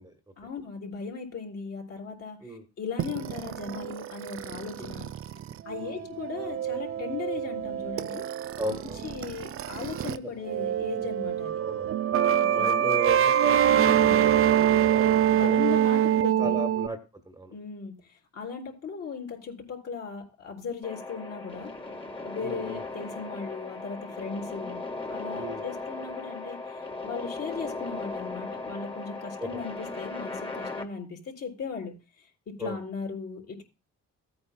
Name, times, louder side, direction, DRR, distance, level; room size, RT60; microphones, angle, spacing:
voice 1, 0.4-5.1 5.6-8.2 8.7-8.8 9.0-11.6 12.3-13.0 13.6-14.2 15.3-16.6 17.5-21.7 22.2-24.8 25.1-33.6, left 5 dB, 55° left, 2 dB, 3.7 m, -38 dB
sound 1, 3.0-10.2 10.4-16.9, right 10 dB, 45° right, 0.4 m, -25 dB
voice 2, 8.6-9.0 11.6-11.9 12.5-15.6 16.4-17.0 17.3-17.5 22.4-22.8 25.4-25.6 29.4-29.5 32.6-32.8, right 1 dB, 15° right, 6 dB, 1.4 m, -36 dB
sound 2, 20.8-30.8, left 3 dB, 15° left, 1.8 m, -37 dB
15.0 x 8.7 x 2.3 m, 0.29 s
cardioid pair, 90°, 30 cm